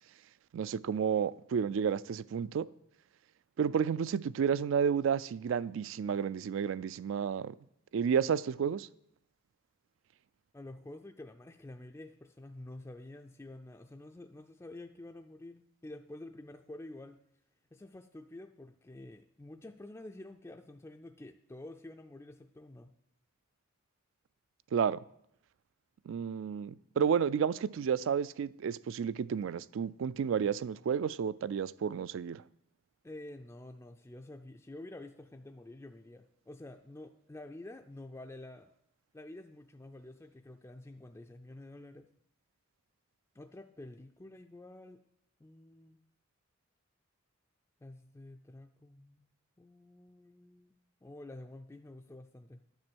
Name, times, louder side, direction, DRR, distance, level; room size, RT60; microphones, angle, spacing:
voice 1, 0.5-2.7 3.6-7.6 7.9-8.9 24.7-25.0 26.1-32.4, right 7 dB, 65° right, 0.3 m, -31 dB
voice 2, 10.5-17.2 17.7-22.9 33.0-38.7 39.1-42.1 43.3-45.0 45.4-46.0 47.8-49.3 49.6-50.7 51.0-52.6, left 1 dB, 15° left, 0.3 m, -49 dB
10.5 x 7.3 x 6.2 m
head